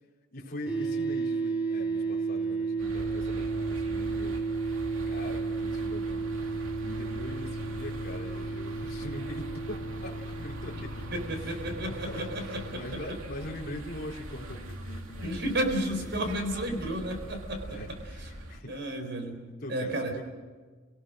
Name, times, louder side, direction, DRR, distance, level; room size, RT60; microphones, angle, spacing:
voice 1, 0.3-4.4 5.0-6.3 6.8-16.2 17.7-18.8 19.6-20.2, left 1 dB, 45° left, -1 dB, 3.9 m, -42 dB
sound 1, 0.7-12.8, right 4 dB, 5° right, 4.4 m, -33 dB
sound 2, 2.8-18.6, right 1 dB, 75° right, 2.5 m, -42 dB
voice 2, 11.1-13.0 15.2-17.8 18.7-19.4 19.7-20.1, right 1 dB, 55° right, 5 dB, 4.2 m, -32 dB
29.0 x 19.0 x 6.4 m, 1.4 s
head